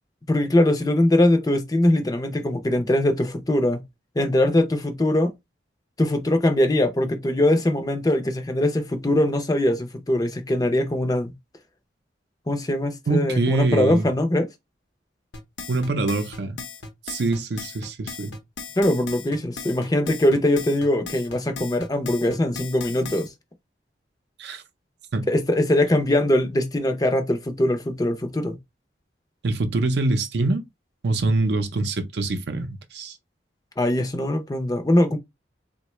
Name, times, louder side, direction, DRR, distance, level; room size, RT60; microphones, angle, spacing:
voice 1, 0.3-3.8 4.2-5.3 6.0-11.3 12.5-14.5 18.8-23.3 25.3-28.6 33.8-35.2, left 1 dB, 20° left, 0.5 m, -21 dB
voice 2, 13.1-14.1 15.7-16.6 17.1-18.3 24.4-24.6 25.1-25.3 29.4-30.6 31.0-33.1, right 2 dB, 65° right, 0.5 m, -24 dB
sound 1, 15.3-23.3, left 5 dB, 85° left, 0.7 m, -37 dB
3.7 x 2.1 x 3.0 m
head